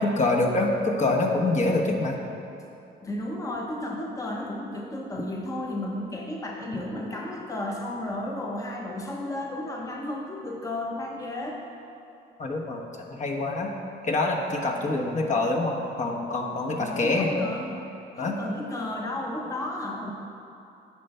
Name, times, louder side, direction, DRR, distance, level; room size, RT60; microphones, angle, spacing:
voice 1, 0.0-2.2 12.4-12.8 13.1-13.7 14.0-17.5 18.2-18.4, left 2 dB, 35° left, 0 dB, 1.0 m, -25 dB
voice 2, 3.0-11.6 16.8-17.9 18.2-20.1, left 1 dB, 15° left, -1 dB, 0.8 m, -33 dB
9.8 x 3.4 x 6.6 m, 2.8 s
cardioid pair, 90°, 20 cm